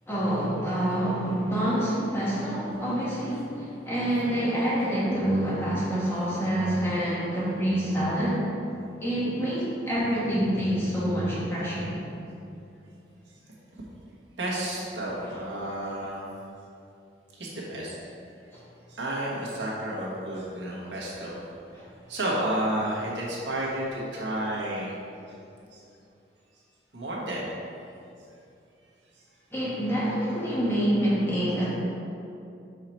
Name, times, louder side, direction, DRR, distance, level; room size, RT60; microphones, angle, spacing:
voice 1, 0.1-8.5 9.0-11.9 18.5-18.6 21.7-21.8 29.5-31.7, right 1 dB, 15° left, -8 dB, 1.4 m, -27 dB
voice 2, 14.4-16.3 17.4-18.0 18.9-21.4 22.1-25.0 25.7-25.8 26.9-27.5, right 1 dB, 90° right, -5 dB, 1.4 m, -31 dB
5.7 x 4.8 x 4.4 m, 2.6 s
head